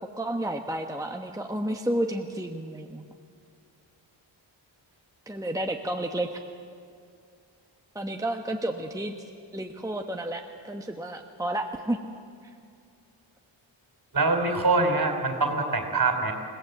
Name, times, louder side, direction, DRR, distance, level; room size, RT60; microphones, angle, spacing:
voice 1, 0.2-3.0 5.3-6.4 7.9-9.1 9.5-12.0, right 1 dB, 5° right, 3 dB, 1.1 m, -31 dB
voice 2, 14.1-16.3, right 3 dB, 45° right, 4 dB, 3.8 m, -24 dB
28.5 x 17.5 x 8.0 m, 2.3 s
wide cardioid pair, 105°, 47 cm